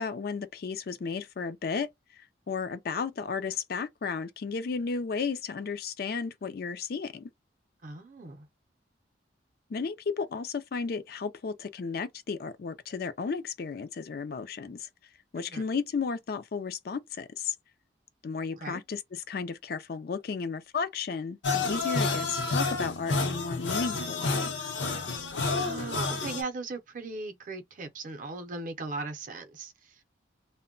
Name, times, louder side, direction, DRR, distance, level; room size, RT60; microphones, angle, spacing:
voice 1, 0.0-1.9 2.2-7.3 9.7-14.9 15.3-17.5 18.2-24.5, left 5 dB, 55° left, 0.4 m, -34 dB
voice 2, 7.8-8.5 15.4-15.7 18.5-18.8 25.5-30.0, right 3 dB, 45° right, 0.6 m, -38 dB
sound 1, 21.4-26.4, left 3 dB, 75° left, 0.7 m, -30 dB
2.1 x 2.1 x 3.7 m
head